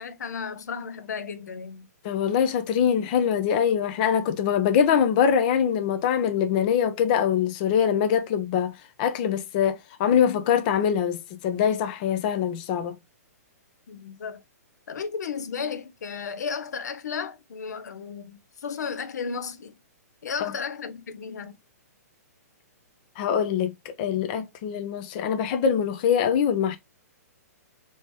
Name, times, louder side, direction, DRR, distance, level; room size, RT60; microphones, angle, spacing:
voice 1, 0.0-1.9 13.9-14.4 14.9-19.7 20.2-21.6, left 6 dB, 85° left, 0.5 m, -34 dB
voice 2, 2.0-13.0 20.4-20.5 23.2-26.8, left 8 dB, 30° left, 0.4 m, -23 dB
3.2 x 2.8 x 3.0 m
hypercardioid pair, 160°, 9 cm